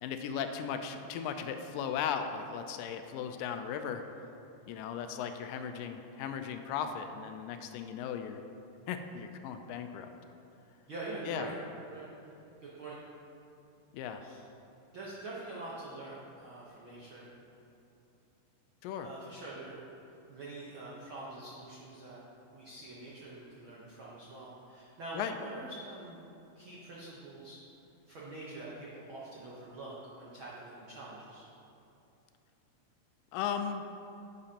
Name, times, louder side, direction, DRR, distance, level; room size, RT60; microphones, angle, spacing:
voice 1, 0.0-4.0 4.7-8.4 8.9-10.1 11.2-11.5 13.9-14.2 18.8-19.1 25.1-25.4 33.3-33.8, left 7 dB, 85° left, 7 dB, 2.1 m, -37 dB
voice 2, 10.9-11.5 11.8-12.3 12.6-13.0 14.2-14.4 14.9-17.3 19.0-19.8 20.3-22.2 22.5-26.2 26.5-27.6 28.1-31.4, right 2 dB, 85° right, -6 dB, 1.1 m, -45 dB
10.0 x 8.0 x 2.8 m, 2.8 s
omnidirectional pair, 3.9 m